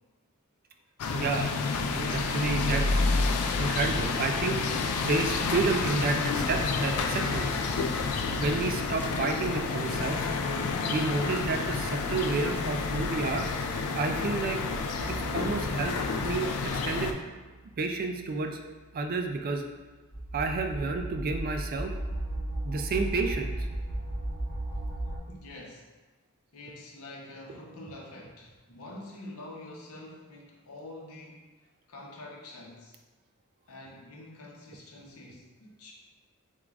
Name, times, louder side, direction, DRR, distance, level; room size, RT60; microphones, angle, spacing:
sound 1, 1.0-17.1, left 4 dB, 90° left, 0.4 m, -29 dB
voice 1, 1.1-1.5 1.9-3.0 3.6-4.6 5.0-7.5 8.4-10.3 10.9-13.5 13.9-14.6 15.1-16.0 16.2-17.1 17.8-18.6 18.9-19.6 20.3-21.9 22.6-23.5, right 3 dB, 45° right, 4 dB, 0.4 m, -30 dB
sound 2, 7.1-8.3 8.6-8.7 9.0-9.2 9.4-12.9 13.5-13.6 14.1-14.2 14.6-14.7 15.0-15.1 15.3-16.0, left 1 dB, 10° right, 0.9 m, -50 dB
sound 3, 15.0-16.3 16.9-25.2, right 1 dB, 45° left, 1.1 m, -37 dB
voice 2, 25.3-25.9 26.5-31.5 31.9-33.0 33.7-35.9, left 1 dB, 75° left, -1 dB, 0.8 m, -46 dB
7.0 x 2.3 x 2.4 m, 1.2 s
head